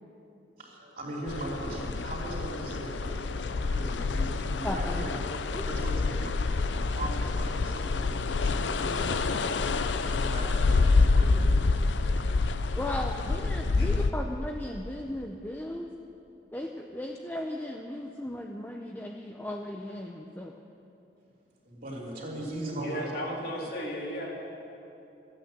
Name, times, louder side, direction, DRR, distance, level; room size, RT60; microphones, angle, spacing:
voice 1, 0.6-5.2 5.7-9.3 9.8-11.6 21.6-23.4, right 1 dB, 55° right, -4 dB, 3.2 m, -39 dB
sound 1, 1.3-14.1, left 3 dB, 90° left, 0.5 m, -27 dB
voice 2, 4.6-5.0 5.5-5.7 12.7-15.9 16.5-20.6, left 1 dB, 10° left, 1 dB, 0.5 m, -36 dB
voice 3, 22.6-24.3, equal, 60° left, -2 dB, 2.4 m, -35 dB
14.0 x 8.9 x 7.7 m, 2.8 s
head